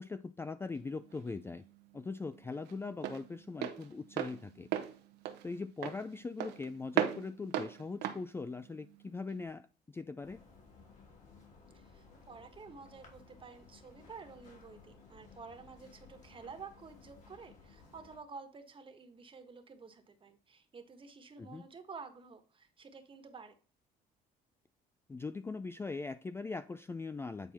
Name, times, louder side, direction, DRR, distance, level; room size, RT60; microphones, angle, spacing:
voice 1, 0.0-1.6 1.9-4.7 5.4-10.4 21.4-21.6 25.1-27.5, left 4 dB, 15° left, 0.3 m, -41 dB
Walk footsteps, 0.8-9.4, right 11 dB, 85° right, 1.1 m, -38 dB
sound 1, 10.2-18.2, left 4 dB, 45° left, 3.3 m, -58 dB
voice 2, 11.7-23.5, right 5 dB, 30° right, 1.4 m, -51 dB
9.2 x 4.4 x 4.2 m
cardioid pair, 110°, 17 cm